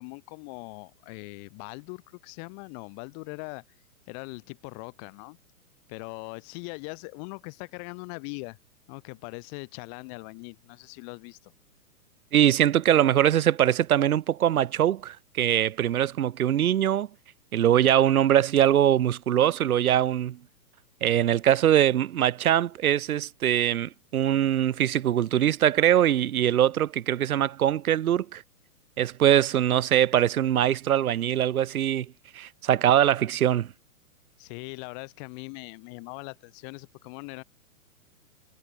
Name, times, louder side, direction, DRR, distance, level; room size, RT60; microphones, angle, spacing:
voice 1, 0.0-3.6 4.1-5.4 5.9-8.6 8.9-11.5 34.4-37.4, left 40 dB or more, 25° left, 2.3 m, -41 dB
voice 2, 12.3-17.1 17.5-20.4 21.0-28.4 29.0-32.1 32.3-33.7, right 11 dB, 70° right, 1.3 m, -22 dB
hypercardioid pair, 160°, 45 cm